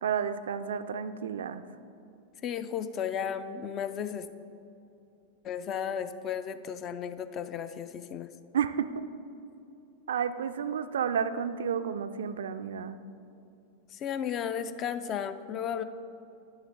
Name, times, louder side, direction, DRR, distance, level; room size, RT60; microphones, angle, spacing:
voice 1, 0.0-1.6 8.5-9.0 10.1-13.0, right 7 dB, 65° right, 11 dB, 0.3 m, -31 dB
voice 2, 2.4-4.3 5.4-8.3 13.9-15.8, left 8 dB, 30° left, 11 dB, 0.4 m, -34 dB
9.7 x 7.1 x 3.9 m, 2.7 s
figure-of-eight pair, 90°, 0 cm